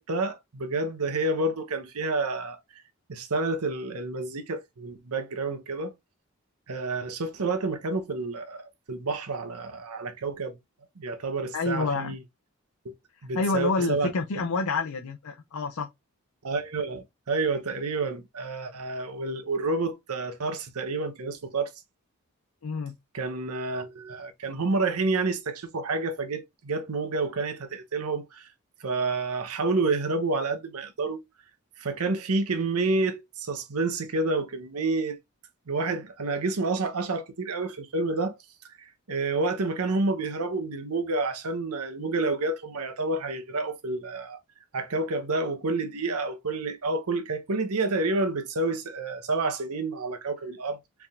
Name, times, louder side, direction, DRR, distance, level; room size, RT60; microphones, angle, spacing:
voice 1, 0.0-2.6 3.1-5.9 6.7-10.6 11.0-12.2 13.2-14.1 16.4-21.7 23.1-28.5 28.8-31.2 31.8-35.2 35.7-38.4 38.8-44.4 44.7-50.8, right 3 dB, 85° right, 0.8 m, -29 dB
voice 2, 11.5-12.2 13.4-15.9 22.6-22.9, left 3 dB, 80° left, 0.6 m, -28 dB
4.6 x 3.4 x 2.4 m
head